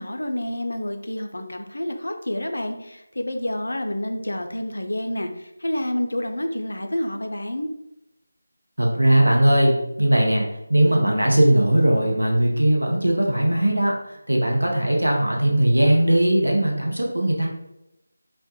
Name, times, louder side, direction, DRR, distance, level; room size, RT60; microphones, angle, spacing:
voice 1, 0.0-7.7, left 1 dB, 70° left, 5 dB, 0.3 m, -28 dB
voice 2, 8.8-17.5, right 1 dB, 85° right, -1 dB, 0.6 m, -19 dB
2.2 x 2.1 x 2.8 m, 0.89 s
figure-of-eight pair, 165°, 0 cm